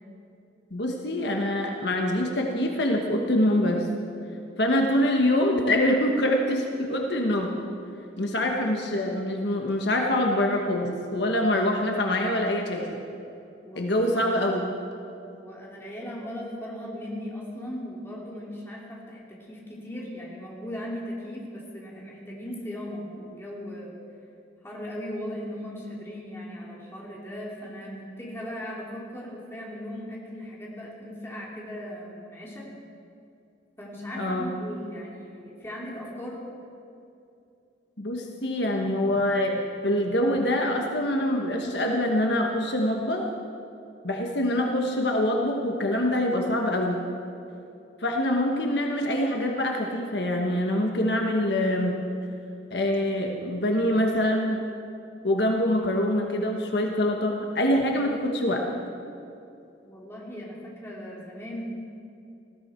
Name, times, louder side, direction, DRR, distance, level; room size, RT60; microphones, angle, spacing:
voice 1, 0.7-3.9 4.6-7.5 8.2-13.0 13.7-14.7 34.1-34.5 38.0-43.3 44.0-47.0 48.0-51.9 52.7-54.6 55.2-58.6, left 1 dB, 65° left, 1 dB, 1.3 m, -25 dB
voice 2, 13.6-14.4 15.3-23.9 24.6-32.7 33.8-36.4 59.8-61.6, equal, 15° left, -4 dB, 2.9 m, -38 dB
19.5 x 15.0 x 4.5 m, 2.7 s
head